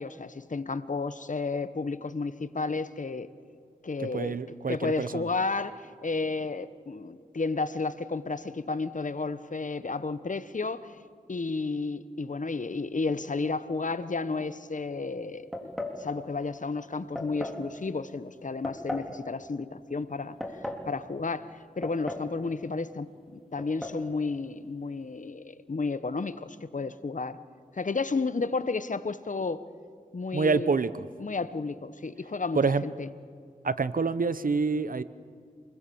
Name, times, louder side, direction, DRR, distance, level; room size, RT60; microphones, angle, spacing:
voice 1, 0.0-3.3 3.8-4.4 4.7-10.9 11.3-15.7 16.0-20.4 20.9-21.5 21.8-27.4 27.7-29.6 30.1-30.7 31.2-33.1, left 3 dB, 55° left, 14 dB, 1.1 m, -32 dB
voice 2, 4.1-5.3 30.3-31.1 32.6-32.8 33.6-35.0, right 4 dB, 65° right, 15 dB, 0.9 m, -27 dB
sound 1, 15.5-16.0 17.2-17.6 18.6-19.1 20.2-20.9 21.8-22.4 22.6-22.7 23.6-24.0, left 1 dB, ahead, 3.5 m, -36 dB
27.5 x 21.5 x 7.1 m, 2.2 s
cardioid pair, 40°, 15 cm